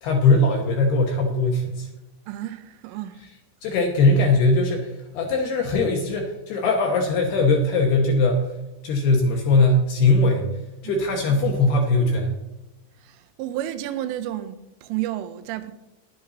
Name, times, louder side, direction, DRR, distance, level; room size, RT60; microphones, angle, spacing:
voice 1, 0.0-1.9 3.6-8.5 8.8-10.5 10.8-12.3, left 2 dB, 70° left, 2.6 m, -20 dB
voice 2, 2.3-3.2 10.8-11.0 13.0-15.7, right 13 dB, 85° right, 3.1 m, -31 dB
11.0 x 10.5 x 4.2 m
omnidirectional pair, 5.9 m